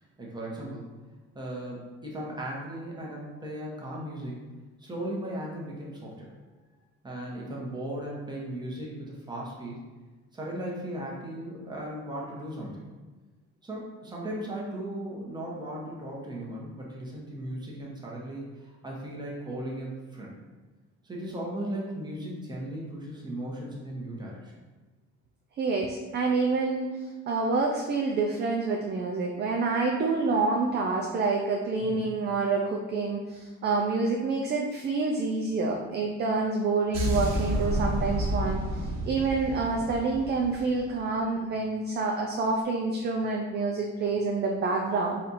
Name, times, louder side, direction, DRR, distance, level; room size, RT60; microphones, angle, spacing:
voice 1, 0.2-0.9 1.3-4.4 4.8-6.3 7.0-9.8 10.3-12.8 13.6-20.3 21.0-24.5 31.9-32.1, right 1 dB, 15° right, -4 dB, 1.0 m, -37 dB
voice 2, 25.6-26.9 27.3-38.6 39.1-45.2, right 3 dB, 35° right, 0 dB, 0.4 m, -27 dB
sound 1, 36.9-41.0, equal, 65° right, 1.0 m, -30 dB
4.2 x 2.5 x 4.1 m, 1.3 s
cardioid pair, 135°, 29 cm